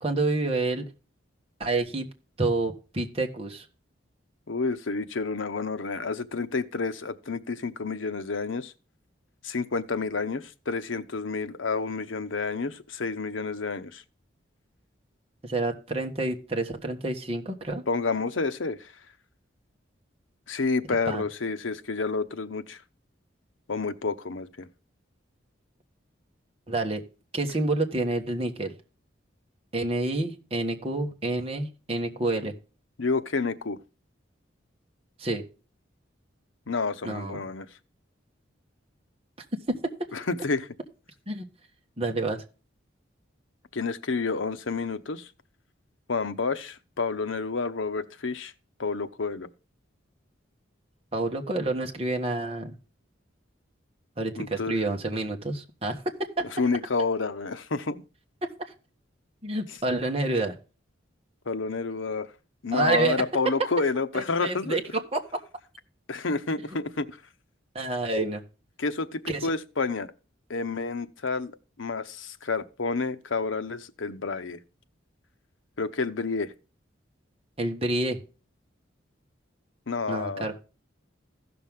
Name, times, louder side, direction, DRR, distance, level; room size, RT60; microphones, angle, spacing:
voice 1, 0.0-0.8 1.6-2.1 2.4-3.7 15.4-17.8 21.1-21.2 26.7-27.0 27.3-28.7 29.7-32.5 35.2-35.4 37.0-37.4 39.7-39.8 41.3-41.5 42.0-42.4 51.1-52.8 54.2-56.0 56.4-56.5 59.4-60.5 62.7-63.2 64.1-65.2 67.7-68.4 69.3-69.5 77.6-78.2 80.1-80.6, right 2 dB, 30° right, 1.4 m, -28 dB
voice 2, 4.5-8.7 9.4-14.0 17.9-18.9 20.5-22.8 23.7-24.7 33.0-33.8 36.7-37.7 40.1-40.7 43.7-45.3 46.1-48.5 48.8-49.5 54.4-54.8 56.5-58.0 61.5-62.3 62.6-64.8 66.1-67.2 68.8-70.1 70.5-71.5 71.8-74.6 75.8-76.5 79.9-80.5, left 4 dB, 80° left, 0.8 m, -29 dB
15.5 x 6.1 x 3.6 m
head